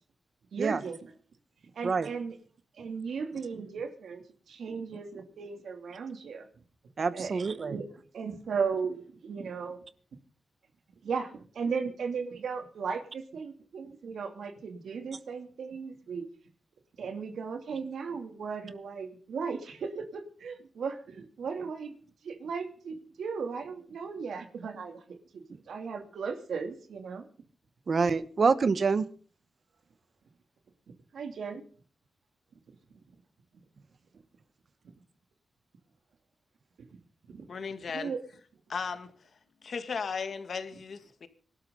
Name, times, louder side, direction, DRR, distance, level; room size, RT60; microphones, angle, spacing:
voice 1, 0.5-1.0 1.7-2.4 2.8-6.5 7.1-7.9 8.1-9.8 11.0-16.3 17.0-21.9 22.2-27.3 31.1-31.6 36.8-36.9 37.3-37.5 37.9-38.2, right 5 dB, 80° right, 6 dB, 2.7 m, -36 dB
voice 2, 7.0-7.8 27.9-29.1, right 4 dB, 45° right, 14 dB, 1.1 m, -26 dB
voice 3, 37.5-38.1 38.7-39.1 39.6-41.3, left 5 dB, 50° left, 9 dB, 2.0 m, -36 dB
25.5 x 12.5 x 3.9 m, 0.43 s
wide cardioid pair, 165°, 0 cm